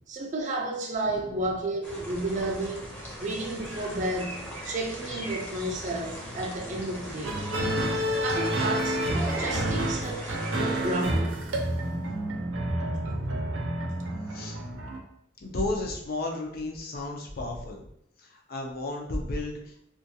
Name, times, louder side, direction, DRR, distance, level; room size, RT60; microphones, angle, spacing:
voice 1, 0.1-2.9 3.2-7.4 8.2-11.3 12.0-12.1, right 2 dB, 40° right, 1 dB, 0.4 m, -32 dB
voice 2, 1.0-1.5 5.4-5.5 7.5-8.1 12.3-12.7 14.3-14.8 15.4-17.9 18.2-19.8, left 2 dB, 50° left, 1 dB, 0.5 m, -35 dB
sound 1, 1.8-11.1, equal, 10° left, 0.6 m, -38 dB
sound 2, 7.2-15.0, right 1 dB, 85° right, 0.5 m, -29 dB
2.5 x 2.3 x 2.7 m, 0.71 s
head